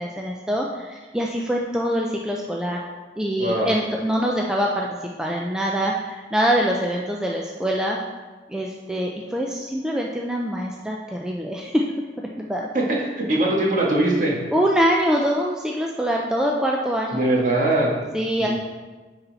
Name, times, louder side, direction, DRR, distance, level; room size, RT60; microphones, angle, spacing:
voice 1, 0.0-2.9 3.2-4.9 5.2-8.0 8.5-11.8 12.2-12.7 14.5-17.3 18.1-18.5, equal, 5° right, -2 dB, 0.4 m, -24 dB
voice 2, 12.7-14.4 17.1-17.9 18.4-18.5, right 1 dB, 45° right, -3 dB, 1.6 m, -21 dB
9.8 x 4.1 x 4.0 m, 1.3 s
head